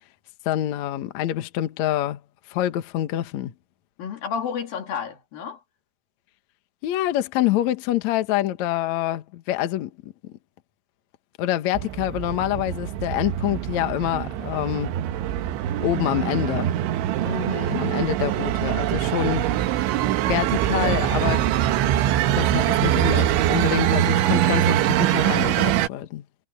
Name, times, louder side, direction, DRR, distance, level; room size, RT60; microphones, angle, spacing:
voice 1, 0.5-2.2 2.5-3.5 6.8-10.3 11.4-15.0 15.8-16.7 17.8-19.5 20.3-21.5 22.4-26.2, left 13 dB, 75° left, 1.6 m, -26 dB
voice 2, 4.0-5.6 17.2-18.1, left 7 dB, 50° left, 4.7 m, -31 dB
sound 1, 11.7-25.9, right 12 dB, 80° right, 3.5 m, -23 dB
omnidirectional pair, 5.4 m